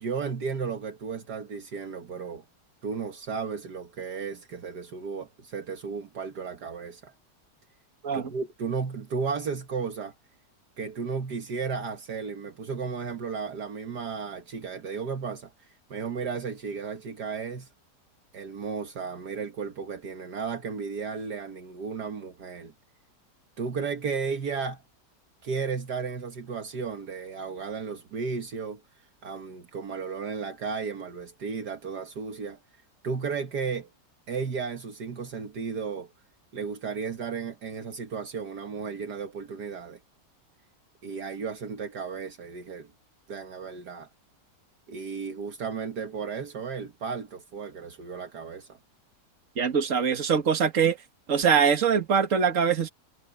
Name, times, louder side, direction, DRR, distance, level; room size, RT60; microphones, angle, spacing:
voice 1, 0.0-2.4 2.8-7.1 8.1-10.1 10.8-15.5 15.9-17.7 18.3-22.7 23.6-24.8 25.4-28.8 29.2-32.6 33.0-33.9 34.3-36.1 36.5-40.0 41.0-42.9 43.3-44.1 44.9-48.8, right 5 dB, 65° right, 2.0 m, -34 dB
voice 2, 49.6-51.0 51.3-52.9, right 6 dB, 45° right, 2.1 m, -23 dB
omnidirectional pair, 1.9 m